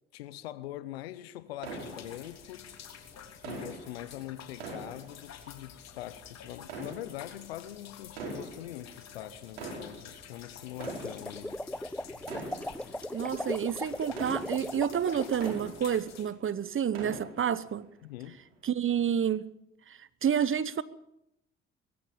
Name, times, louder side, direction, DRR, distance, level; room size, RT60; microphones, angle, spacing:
voice 1, 0.1-2.7 3.4-11.6 18.0-18.4, left 14 dB, 90° left, 0.8 m, -43 dB
sound 1, 1.6-16.3, left 8 dB, 60° left, 3.4 m, -50 dB
sound 2, 1.6-2.7 3.4-5.8 6.6-7.6 8.1-9.0 9.4-16.4 16.7-17.8 18.2-18.3 18.9-19.0, right 3 dB, 85° right, 4.7 m, -44 dB
sound 3, 10.7-15.6, left 1 dB, 5° left, 0.8 m, -38 dB
voice 2, 13.1-17.9 18.6-19.4 19.9-20.8, right 8 dB, 45° right, 1.0 m, -29 dB
22.0 x 14.0 x 8.8 m
hypercardioid pair, 50°, 30 cm